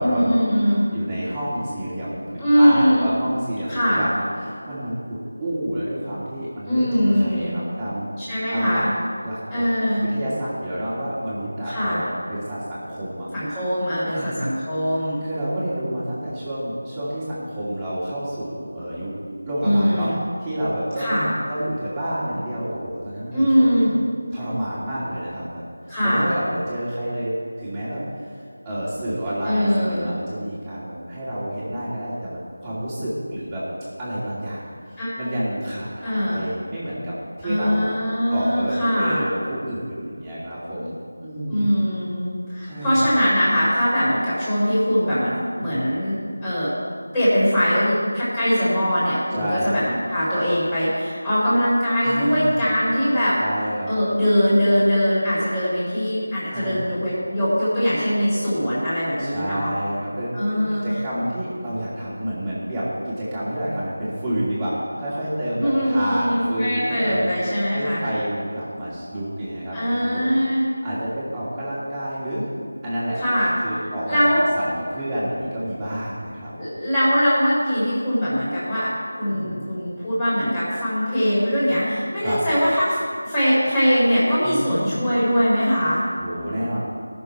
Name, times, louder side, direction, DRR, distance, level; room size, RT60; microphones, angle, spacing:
voice 1, 0.0-0.9 2.4-3.1 3.7-4.0 6.7-7.5 8.2-8.9 9.5-10.1 11.6-12.0 13.3-15.2 19.6-20.2 21.0-21.3 23.3-23.9 25.9-26.3 29.4-30.1 35.0-35.2 36.0-36.4 37.4-39.2 41.5-46.7 47.1-53.4 53.9-59.7 60.3-60.8 65.6-68.0 69.7-70.6 73.2-73.5 74.1-74.4 76.6-78.9 79.2-86.0, equal, 10° left, -11 dB, 3.6 m, -21 dB
voice 2, 0.9-8.1 8.5-8.8 9.2-13.3 14.1-14.4 15.2-19.2 19.5-20.1 20.4-23.8 24.3-25.6 26.0-28.0 28.6-33.6 34.0-37.9 38.3-41.0 41.2-41.7 42.6-43.1 45.6-45.8 49.3-49.7 52.0-52.6 53.4-53.9 56.5-56.9 59.2-67.3 67.7-70.3 70.8-72.5 72.8-73.4 73.6-76.5 79.2-79.6 82.2-82.4 84.4-85.0 86.2-86.8, equal, 10° right, -11 dB, 2.4 m, -29 dB
17.5 x 6.7 x 4.6 m, 2.1 s
figure-of-eight pair, 175°, 0 cm